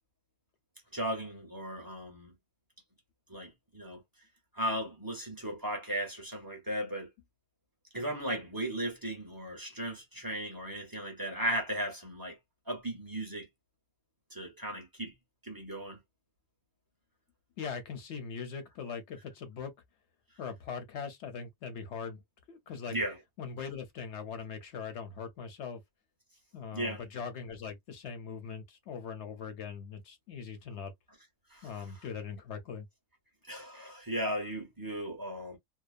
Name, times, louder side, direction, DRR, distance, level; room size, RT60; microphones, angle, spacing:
voice 1, 0.9-2.3 3.3-4.0 4.6-7.1 7.9-12.4 12.7-13.5 14.3-15.1 15.4-16.0 22.9-23.2 26.7-27.0 31.5-31.6 33.5-35.6, right 1 dB, 20° right, 0.6 m, -36 dB
voice 2, 17.6-19.7 20.4-22.2 22.5-23.0 23.4-25.8 26.5-30.9 31.6-32.9, left 6 dB, 55° left, 0.9 m, -41 dB
2.6 x 2.1 x 2.4 m
omnidirectional pair, 1.6 m